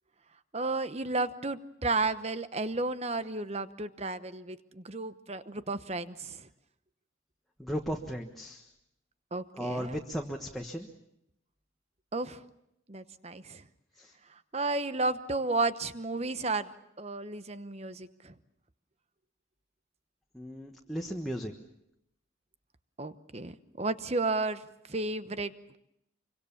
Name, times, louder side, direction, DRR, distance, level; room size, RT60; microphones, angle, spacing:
voice 1, 0.5-6.5 9.3-10.0 12.1-12.4 12.9-13.6 14.5-16.7 17.0-18.3 23.0-24.6 24.9-25.8, right 3 dB, 30° right, 12 dB, 0.9 m, -33 dB
voice 2, 7.6-8.6 9.5-10.9 14.0-14.1 20.3-21.5, equal, ahead, 0 dB, 1.3 m, -36 dB
25.5 x 24.5 x 7.1 m, 0.82 s
head